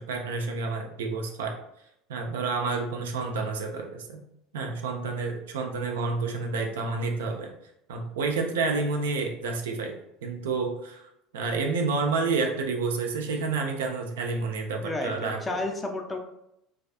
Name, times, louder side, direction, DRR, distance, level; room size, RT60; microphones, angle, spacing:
voice 1, 0.0-1.6 2.1-4.2 4.5-7.5 7.9-11.0 11.3-15.6, right 4 dB, 65° right, 3 dB, 0.3 m, -29 dB
voice 2, 14.8-16.2, left 2 dB, 20° left, 3 dB, 0.4 m, -31 dB
2.3 x 2.3 x 2.3 m, 0.81 s
figure-of-eight pair, 70°, 0 cm